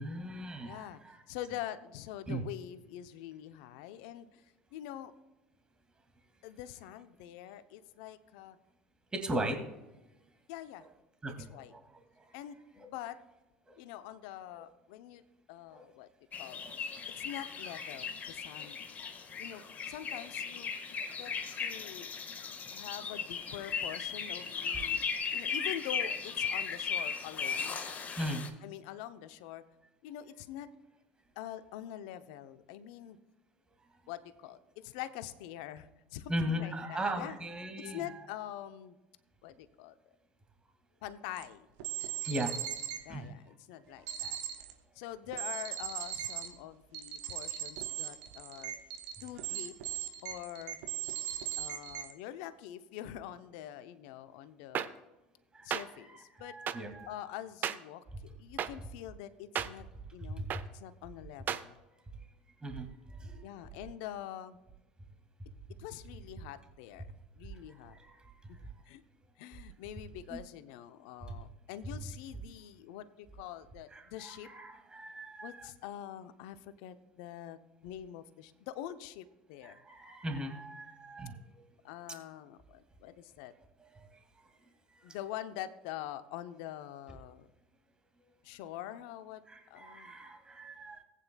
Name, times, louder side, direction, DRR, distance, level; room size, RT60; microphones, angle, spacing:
voice 1, 0.0-1.2 2.3-2.4 9.1-9.6 11.2-12.4 12.8-12.9 13.7-13.8 15.7-15.8 16.6-16.7 18.6-18.7 21.0-21.1 28.2-28.5 36.3-38.1 42.0-42.6 43.1-43.3 44.0-44.1 55.5-55.7 56.0-57.1 60.3-60.6 62.6-63.5 68.0-68.3 73.9-75.7 79.6-81.4 83.9-84.1 85.1-85.2 89.5-91.0, right 1 dB, 20° right, 3 dB, 2.3 m, -38 dB
voice 2, 0.6-1.0 1.3-4.4 4.7-5.1 6.4-8.6 10.5-10.9 11.4-11.7 12.3-13.2 13.8-15.2 15.5-16.1 16.4-16.6 17.1-18.8 19.4-20.7 21.2-21.3 21.6-22.1 22.7-25.0 25.3-27.8 28.6-29.6 30.0-30.7 31.4-33.2 34.1-37.4 37.8-39.0 39.4-40.0 41.0-41.7 43.1-44.4 44.9-48.7 49.2-49.7 50.2-50.8 51.6-54.9 55.6-56.6 57.1-59.9 60.1-60.5 60.7-61.8 63.4-64.6 65.8-67.1 67.4-68.0 68.5-68.6 68.9-69.0 69.4-74.5 75.4-79.8 81.8-83.5 85.0-87.5 88.4-89.4 89.7-90.2, left 12 dB, 65° left, 12 dB, 0.7 m, -45 dB
sound 1, 16.3-28.5, left 6 dB, 35° left, 1.6 m, -37 dB
sound 2, 41.4-41.5 41.8-43.0 44.1-44.7 45.3-46.5 46.9-52.1, right 12 dB, 65° right, 1.3 m, -38 dB
sound 3, 54.7-54.9 55.7-55.8 56.7-56.8 57.6-57.8 58.6-58.7 59.5-59.7 60.5-60.6 61.5-61.6, right 9 dB, 40° right, 0.7 m, -32 dB
18.5 x 9.2 x 2.3 m, 1.1 s
hypercardioid pair, 70°, 5 cm